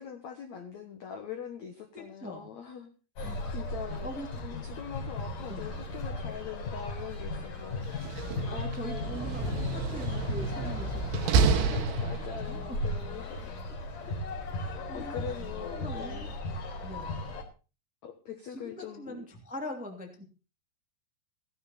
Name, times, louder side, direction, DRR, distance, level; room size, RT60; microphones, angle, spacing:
voice 1, 0.0-2.9 3.2-4.1 4.4-8.4 8.8-9.3 11.5-13.5 14.9-16.3 18.0-19.2, left 7 dB, 85° left, 5 dB, 1.6 m, -43 dB
voice 2, 1.9-2.5 3.2-3.4 4.0-4.3 5.5-5.7 8.5-12.8 14.6-15.2 15.6-16.3 16.8-17.2 18.5-20.2, equal, 5° right, 3 dB, 1.0 m, -42 dB
sound 1, 3.2-17.4, left 2 dB, 45° left, 5.1 m, -36 dB
Slam, 7.9-12.6, right 5 dB, 90° right, 3.8 m, -30 dB
16.0 x 12.5 x 4.2 m, 0.34 s
omnidirectional pair, 5.3 m